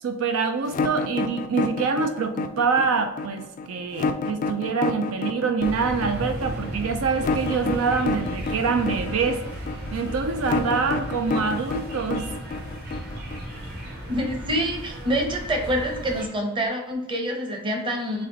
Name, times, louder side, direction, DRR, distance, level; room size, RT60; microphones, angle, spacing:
voice 1, 0.0-9.4 9.9-12.3, right 5 dB, 75° right, 6 dB, 0.4 m, -25 dB
sound 1, 0.7-13.6, left 4 dB, 40° left, 0.3 m, -28 dB
sound 2, 5.6-16.3, equal, 50° right, 1.2 m, -35 dB
voice 2, 14.1-18.3, equal, 25° right, 2 dB, 0.8 m, -26 dB
4.2 x 3.2 x 3.9 m, 0.98 s
head